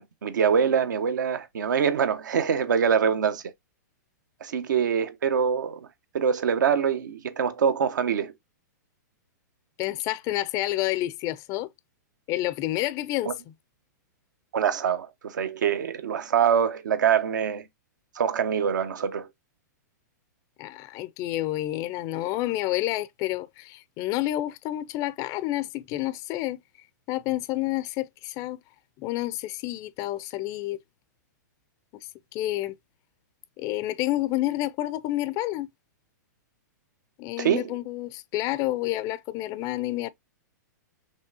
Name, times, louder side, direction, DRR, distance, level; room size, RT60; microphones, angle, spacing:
voice 1, 0.0-3.4 4.4-5.9 6.1-8.3 13.2-13.3 14.5-17.6 18.2-19.3 37.4-37.7, right 7 dB, 80° right, 0.9 m, -24 dB
voice 2, 9.8-11.7 12.3-13.3 20.6-26.6 27.1-28.6 29.0-30.8 32.3-32.7 33.6-35.7 37.2-40.1, left 16 dB, 35° left, 0.4 m, -29 dB
5.5 x 3.2 x 2.6 m
hypercardioid pair, 130°, 10 cm